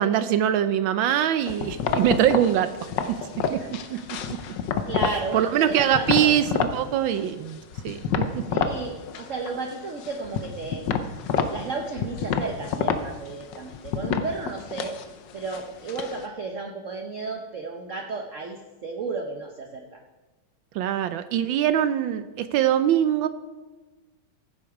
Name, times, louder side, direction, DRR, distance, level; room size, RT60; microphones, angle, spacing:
voice 1, 0.0-2.7 3.9-4.0 4.3-4.4 5.3-7.6 7.8-8.4 20.7-23.3, right 10 dB, 75° right, 12 dB, 1.2 m, -23 dB
sound 1, 1.5-5.3 5.6-6.8 7.1-8.8 9.1-9.7 10.0-16.2, left 6 dB, 65° left, 1.3 m, -28 dB
voice 2, 3.5-4.5 4.9-6.3 8.5-10.8 11.5-15.0 15.3-20.0, right 3 dB, 50° right, 3 dB, 0.9 m, -33 dB
15.5 x 7.8 x 4.8 m, 1.2 s
omnidirectional pair, 2.3 m